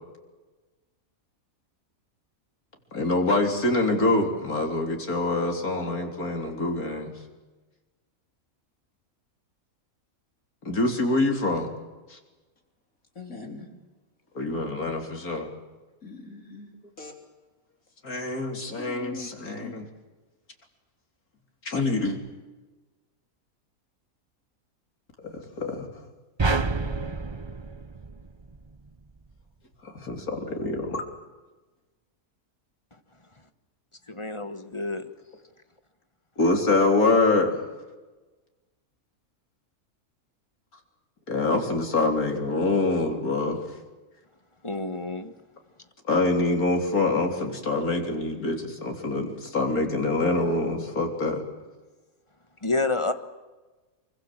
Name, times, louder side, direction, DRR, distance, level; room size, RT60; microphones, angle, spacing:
voice 1, 2.9-7.1 10.6-11.7 12.1-12.2 14.3-15.5 18.0-19.9 21.6-22.2 25.2-26.0 29.8-31.0 36.4-37.7 41.3-43.7 46.1-51.4, left 2 dB, 85° left, 3 dB, 4.0 m, -25 dB
voice 2, 13.1-13.7 16.0-16.7 17.0-17.1 18.7-19.8, left 4 dB, 70° left, 3 dB, 4.2 m, -41 dB
sound 1, 26.4-28.8, right 3 dB, 25° right, 0.6 m, -28 dB
voice 3, 34.1-35.1 44.6-45.3 52.6-53.1, left 3 dB, 20° left, 9 dB, 1.3 m, -28 dB
26.0 x 24.0 x 7.6 m, 1.2 s
omnidirectional pair, 1.5 m